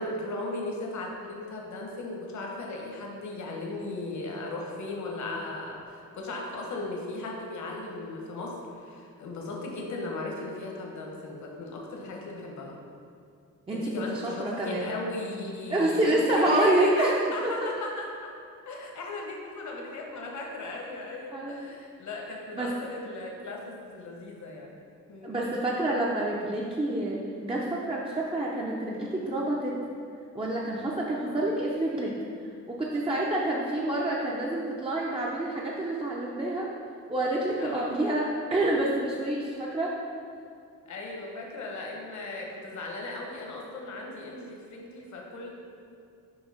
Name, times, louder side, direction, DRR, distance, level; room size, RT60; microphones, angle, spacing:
voice 1, 0.0-12.7 13.7-18.3 18.7-24.7 25.1-25.5 31.3-31.6 37.6-37.9 40.9-45.5, left 2 dB, 60° left, -1 dB, 1.1 m, -37 dB
voice 2, 13.7-14.9 15.7-17.2 17.4-17.7 21.3-21.7 22.5-22.7 25.2-29.8 30.3-32.2 32.7-36.7 37.1-40.0, right 1 dB, 15° right, -4 dB, 0.5 m, -28 dB
6.2 x 3.1 x 5.0 m, 2.3 s
cardioid pair, 110°, 33 cm